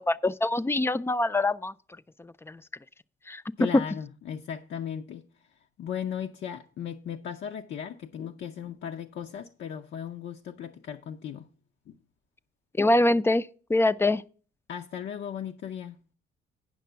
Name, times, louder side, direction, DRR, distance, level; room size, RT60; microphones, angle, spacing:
voice 1, 0.0-1.7 2.5-2.6 3.3-3.4 12.8-14.2, left 2 dB, 10° left, 0.4 m, -24 dB
voice 2, 3.6-5.3 5.8-11.5 11.9-12.0 14.7-16.0, left 8 dB, 65° left, 0.7 m, -36 dB
9.4 x 6.0 x 5.6 m
cardioid pair, 90°, 20 cm